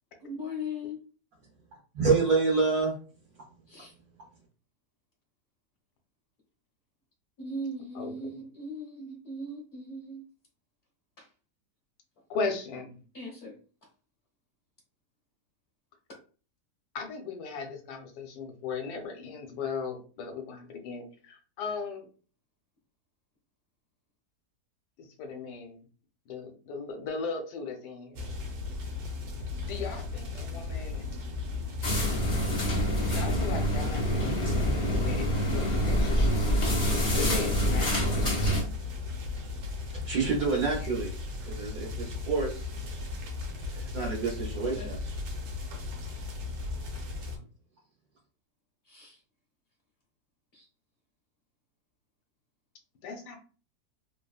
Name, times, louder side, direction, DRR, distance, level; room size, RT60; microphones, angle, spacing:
voice 1, 0.2-1.0 3.7-3.9 7.4-10.2 11.2-11.3 13.1-13.6 44.8-45.2 48.9-49.2 50.5-50.7, left 1 dB, 50° left, -3 dB, 0.9 m, -39 dB
voice 2, 1.9-2.9 39.9-41.1 41.4-42.6 43.7-45.0, right 4 dB, 65° right, -3 dB, 1.2 m, -27 dB
voice 3, 7.9-8.3 12.3-13.0 16.9-22.1 25.0-25.9 26.3-28.4 29.6-31.0 33.0-35.3 35.5-38.3 53.0-53.4, left 4 dB, 75° left, 4 dB, 1.3 m, -37 dB
sound 1, 28.1-47.4, left 4 dB, 90° right, 1.3 m, -36 dB
sound 2, 31.8-38.6, equal, 35° left, 0.5 m, -26 dB
3.2 x 2.1 x 2.3 m, 0.38 s
omnidirectional pair, 1.8 m